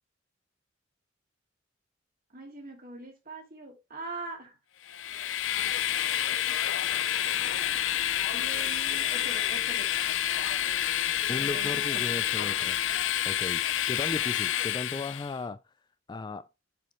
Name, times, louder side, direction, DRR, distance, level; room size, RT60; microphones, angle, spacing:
voice 1, 2.3-4.5 8.3-10.0 11.4-12.2, right 2 dB, 50° right, 2.6 m, -42 dB
Train, 4.9-15.3, left 11 dB, 75° left, 0.5 m, -29 dB
sound 1, 7.4-13.0, left 2 dB, 55° left, 2.1 m, -54 dB
voice 2, 11.3-12.8 13.2-15.6 16.1-16.5, left 3 dB, 20° left, 0.3 m, -36 dB
7.3 x 5.2 x 3.1 m
head